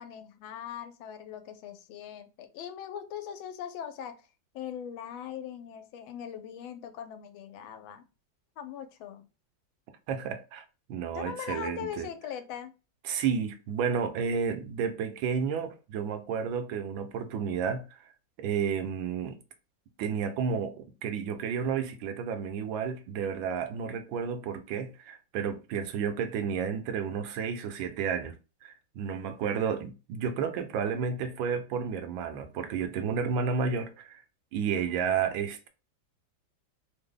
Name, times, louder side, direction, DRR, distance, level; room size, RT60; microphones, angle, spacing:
voice 1, 0.0-4.2 4.5-8.1 8.6-9.3 11.1-12.7 34.9-35.3, left 9 dB, 85° left, 1.4 m, -40 dB
voice 2, 10.1-10.6 10.9-12.1 13.0-18.0 18.4-19.4 20.0-28.4 28.6-34.2 34.5-35.7, right 6 dB, 80° right, 1.3 m, -31 dB
3.4 x 2.0 x 3.7 m
omnidirectional pair, 2.1 m